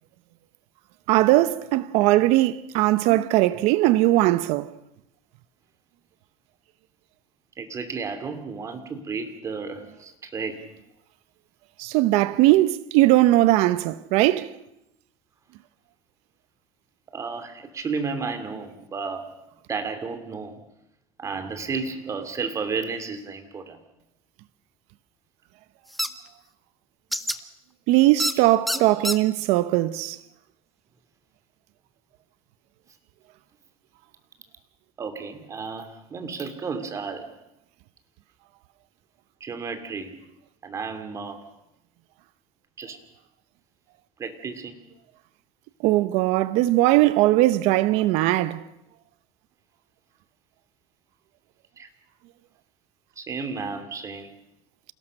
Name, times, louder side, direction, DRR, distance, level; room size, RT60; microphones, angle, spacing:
voice 1, 1.1-4.7 11.8-14.5 27.9-30.2 45.8-48.6, right 16 dB, 75° right, 0.8 m, -19 dB
voice 2, 7.6-10.7 17.1-19.3 19.7-20.6 21.2-23.8 28.7-28.8 35.0-37.3 39.4-40.2 40.6-41.4 42.8-43.0 44.2-44.8 51.8-51.9 53.2-54.3, right 5 dB, 30° right, 2.8 m, -32 dB
sound 1, 26.0-26.1 27.1-27.4 28.2-28.3 28.7-29.2, equal, ahead, 1.0 m, -25 dB
27.5 x 17.5 x 6.6 m
cardioid pair, 135°, 11 cm